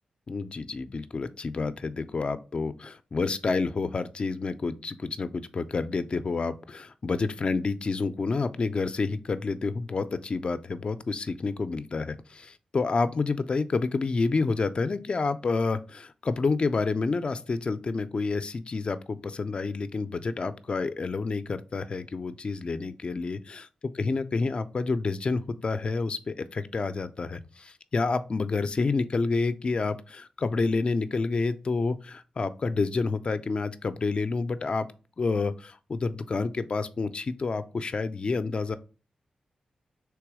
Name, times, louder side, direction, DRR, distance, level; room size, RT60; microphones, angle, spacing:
voice 1, 0.3-23.7 23.9-34.9 35.2-38.8, left 4 dB, 45° left, 11 dB, 0.4 m, -29 dB
3.4 x 3.0 x 4.7 m, 0.34 s
cardioid pair, 65°, 2 cm